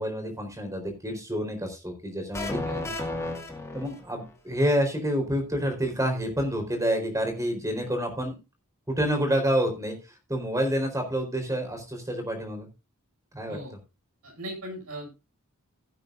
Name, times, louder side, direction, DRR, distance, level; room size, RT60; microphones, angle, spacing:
voice 1, 0.0-2.6 3.7-8.4 8.9-10.0 10.3-12.7 13.3-13.6, equal, 15° right, 5 dB, 4.3 m, -28 dB
sound 1, 2.3-4.3, left 2 dB, 15° left, 2.3 m, -33 dB
voice 2, 2.6-3.0 13.5-13.7 14.2-15.3, equal, 70° right, 1 dB, 7.5 m, -39 dB
17.0 x 8.8 x 2.6 m, 0.26 s
head